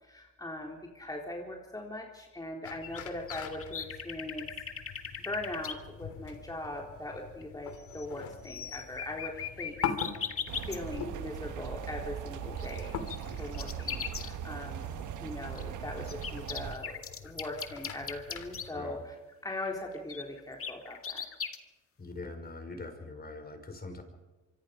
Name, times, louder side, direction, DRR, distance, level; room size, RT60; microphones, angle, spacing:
voice 1, 0.0-4.5 5.2-9.7 10.1-12.9 13.4-19.2 19.4-21.2, left 1 dB, 10° left, -1 dB, 3.9 m, -40 dB
sound 1, 2.6-18.7, left 7 dB, 75° left, 2.9 m, -44 dB
sound 2, 2.8-5.7 7.4-7.5 7.8-8.2 8.4-10.8 12.6-14.3 15.5-18.6 20.1-21.6, left 7 dB, 45° left, 2.1 m, -38 dB
sound 3, 10.5-16.8, right 9 dB, 80° right, 1.5 m, -40 dB
voice 2, 22.0-24.0, left 2 dB, 30° left, 6 dB, 5.5 m, -42 dB
26.5 x 24.0 x 5.3 m, 1.1 s
cardioid pair, 90°, 30 cm